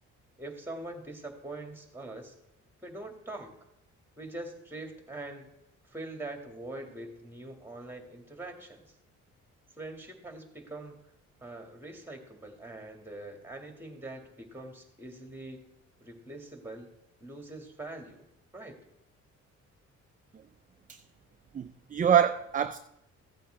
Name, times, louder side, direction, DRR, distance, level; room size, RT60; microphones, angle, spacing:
voice 1, 0.4-2.3 2.8-3.5 4.2-5.5 5.9-9.0 9.8-11.0 11.4-15.6 16.0-16.9 17.2-18.3 18.5-18.8, right 2 dB, 5° right, 3 dB, 2.2 m, -43 dB
voice 2, 21.5-22.8, right 8 dB, 25° right, 8 dB, 0.5 m, -25 dB
15.0 x 8.4 x 3.4 m, 0.83 s
cardioid pair, 90°, 30 cm